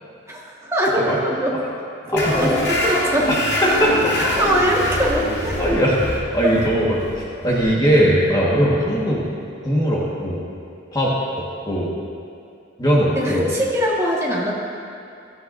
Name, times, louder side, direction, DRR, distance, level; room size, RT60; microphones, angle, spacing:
voice 1, 0.3-1.6 2.0-3.3 4.2-5.6 6.4-6.5 13.1-14.6, equal, 15° right, -4 dB, 1.6 m, -22 dB
voice 2, 2.1-2.5 3.3-4.1 5.6-9.2 9.6-10.5 10.9-11.9 12.8-13.5, equal, 20° left, -5 dB, 1.5 m, -20 dB
sound 1, 2.2-9.3, left 1 dB, 55° left, 2.4 m, -25 dB
16.5 x 13.0 x 2.6 m, 2.5 s
head